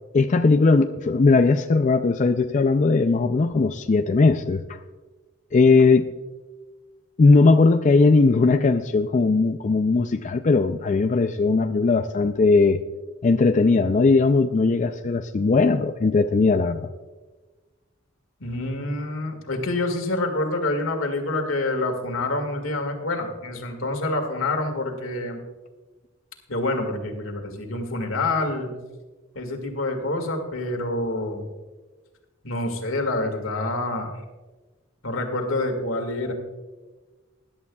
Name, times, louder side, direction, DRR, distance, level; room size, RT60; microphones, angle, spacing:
voice 1, 0.1-4.8 5.5-6.1 7.2-12.8 13.2-16.8, left 3 dB, 40° left, 7 dB, 0.4 m, -19 dB
voice 2, 18.4-25.4 26.5-28.7 29.3-31.5 32.4-34.2 35.0-36.3, left 2 dB, 90° left, 4 dB, 2.0 m, -27 dB
20.5 x 11.0 x 2.3 m, 1.2 s
head